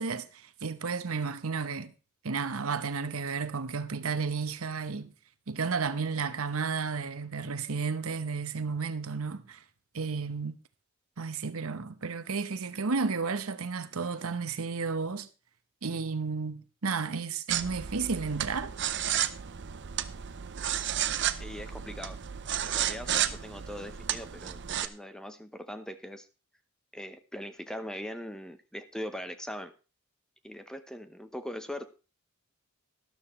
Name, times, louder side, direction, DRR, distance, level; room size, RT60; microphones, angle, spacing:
voice 1, 0.0-1.9 2.2-5.1 5.5-9.6 9.9-10.6 11.2-15.3 15.8-18.7, right 5 dB, 90° right, 0.9 m, -32 dB
sound 1, 17.5-24.9, right 10 dB, 55° right, 0.7 m, -32 dB
voice 2, 21.4-22.2 22.6-26.3 26.9-29.7 30.4-31.9, equal, 5° left, 0.8 m, -41 dB
13.0 x 12.0 x 3.2 m
head